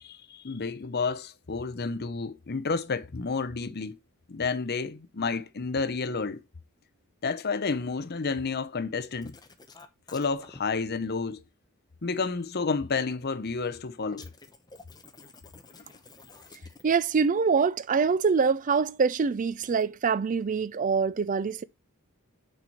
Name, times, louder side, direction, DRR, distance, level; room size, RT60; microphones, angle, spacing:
voice 1, 0.0-4.0 4.3-6.4 7.2-9.4 10.1-11.4 12.0-14.3, left 4 dB, 45° left, 0.7 m, -30 dB
sound 1, 9.2-10.6 14.1-17.1 19.6-19.9, left 3 dB, 20° left, 0.9 m, -51 dB
voice 2, 16.8-21.6, right 5 dB, 35° right, 0.4 m, -25 dB
6.6 x 4.7 x 5.8 m
head